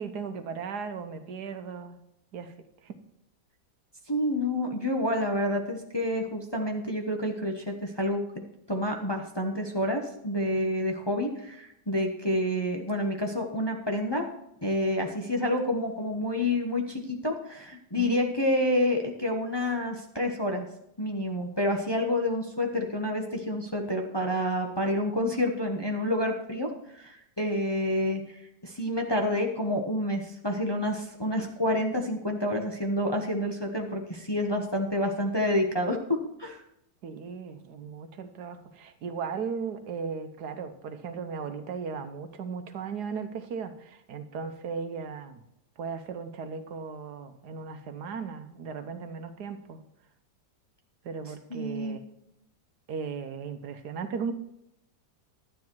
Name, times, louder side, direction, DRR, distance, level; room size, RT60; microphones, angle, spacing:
voice 1, 0.0-2.0 2.3-2.5 2.8-3.0 18.0-18.2 37.0-45.4 45.8-49.8 51.0-52.0 52.9-54.3, right 5 dB, 70° right, 9 dB, 1.4 m, -36 dB
voice 2, 4.1-8.2 8.7-14.2 14.6-20.7 21.0-26.7 26.9-28.2 28.6-36.6 51.5-52.0, left 1 dB, 15° left, 2 dB, 1.0 m, -28 dB
12.0 x 9.5 x 4.6 m, 0.81 s
omnidirectional pair, 1.8 m